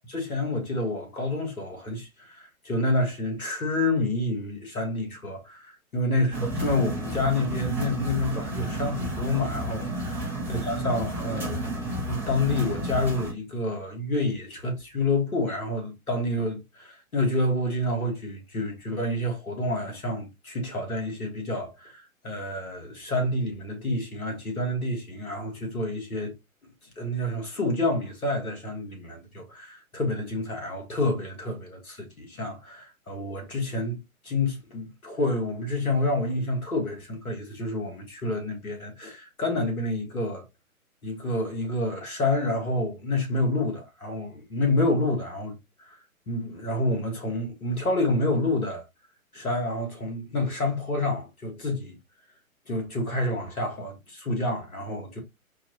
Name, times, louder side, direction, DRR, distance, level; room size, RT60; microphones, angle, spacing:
voice 1, 0.1-10.2 10.5-11.6 12.1-26.3 27.0-40.4 41.0-46.0 46.3-48.8 49.3-52.0 52.7-55.2, left 2 dB, 80° left, 1.7 m, -28 dB
sound 1, 6.3-13.3, right 1 dB, 5° right, 0.7 m, -31 dB
4.5 x 2.3 x 2.8 m
figure-of-eight pair, 125°, 43 cm